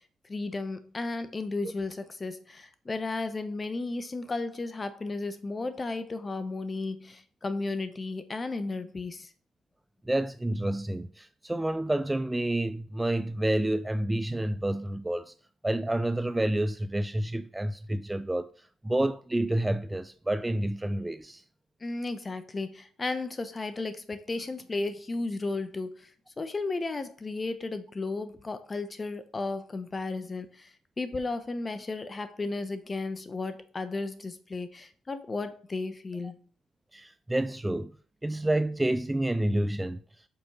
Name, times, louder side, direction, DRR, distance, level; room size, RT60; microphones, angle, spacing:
voice 1, 0.2-9.3 21.8-26.1 26.4-30.7 31.0-36.4, left 3 dB, 30° left, 0.9 m, -34 dB
voice 2, 10.0-15.3 15.6-21.4 36.9-37.9 38.2-40.3, right 1 dB, 10° right, 0.3 m, -29 dB
5.7 x 4.3 x 5.5 m
cardioid pair, 90°, 0 cm